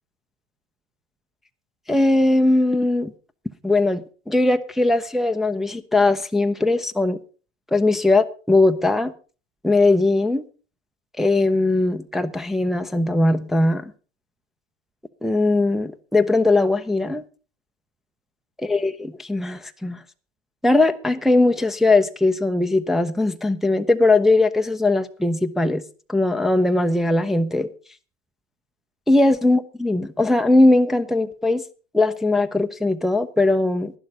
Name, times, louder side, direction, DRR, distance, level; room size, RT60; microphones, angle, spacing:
voice 1, 1.9-3.1 3.6-4.0 4.3-7.2 7.7-9.1 9.6-10.4 11.2-13.9 15.2-17.2 18.6-20.0 20.6-25.8 26.1-27.7 29.1-31.6 31.9-33.9, left 2 dB, ahead, 0.6 m, -19 dB
11.5 x 11.0 x 5.2 m
hypercardioid pair, 85°, 37 cm